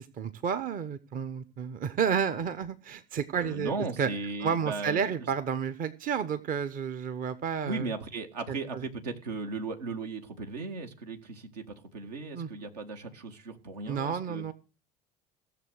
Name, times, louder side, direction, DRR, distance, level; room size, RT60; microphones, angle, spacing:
voice 1, 0.0-3.7 4.0-4.1 4.4-7.9 8.5-8.9 12.3-12.5 13.9-14.5, right 7 dB, 45° right, 13 dB, 1.0 m, -31 dB
voice 2, 3.3-5.1 7.6-14.4, right 3 dB, 75° right, 5 dB, 2.0 m, -37 dB
16.0 x 7.0 x 6.5 m, 0.34 s
figure-of-eight pair, 60°, 20 cm